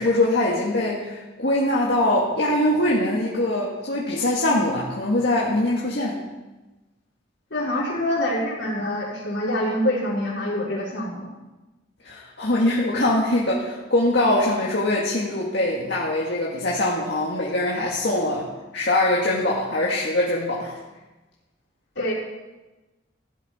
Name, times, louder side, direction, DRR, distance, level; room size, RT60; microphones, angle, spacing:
voice 1, 0.0-6.2 12.0-18.5 18.7-20.8, left 1 dB, 60° left, -4 dB, 1.9 m, -22 dB
voice 2, 7.5-11.3 21.9-22.1, left 1 dB, 75° left, -5 dB, 4.5 m, -25 dB
16.0 x 11.5 x 4.3 m, 1.1 s
head